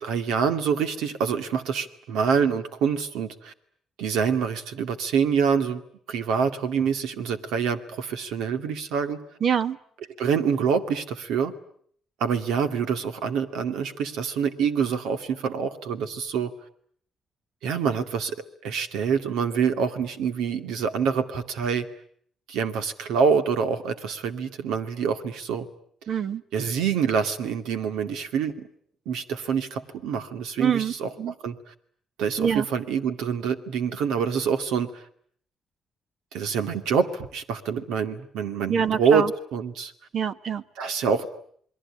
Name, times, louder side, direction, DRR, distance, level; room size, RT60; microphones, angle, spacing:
voice 1, 0.0-3.5 4.0-5.8 6.1-9.2 10.2-11.5 12.2-16.5 17.6-18.4 18.6-21.9 22.5-25.7 26.5-28.7 29.1-31.1 31.4-31.6 32.2-35.0 36.3-39.2 39.5-39.9 40.8-41.3, right 6 dB, 90° right, 9 dB, 2.2 m, -26 dB
voice 2, 9.4-9.8 26.1-26.4 30.6-30.9 31.2-31.3 32.4-32.7 38.7-39.3 40.1-40.6, right 7 dB, 55° right, 12 dB, 1.3 m, -25 dB
28.0 x 21.5 x 9.9 m, 0.64 s
cardioid pair, 90°, 0 cm